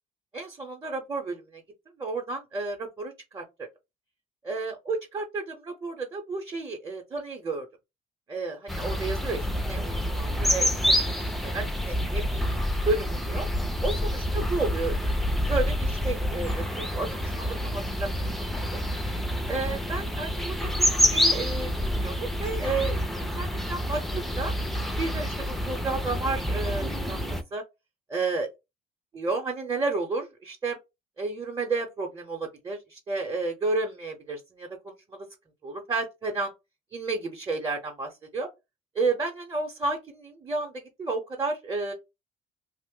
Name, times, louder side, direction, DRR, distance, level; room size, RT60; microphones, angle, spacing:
voice 1, 0.3-1.6 2.0-3.4 4.4-7.7 8.3-12.4 12.8-13.5 13.8-15.1 15.5-18.3 18.7-18.8 19.5-24.5 25.0-27.6 28.1-28.5 29.1-30.8 31.2-35.3 35.6-36.5 36.9-38.5 38.9-41.9, right 3 dB, 25° right, 0.7 m, -32 dB
sound 1, 8.7-27.4, equal, ahead, 0.4 m, -28 dB
2.8 x 2.1 x 3.6 m
cardioid pair, 110°, 17 cm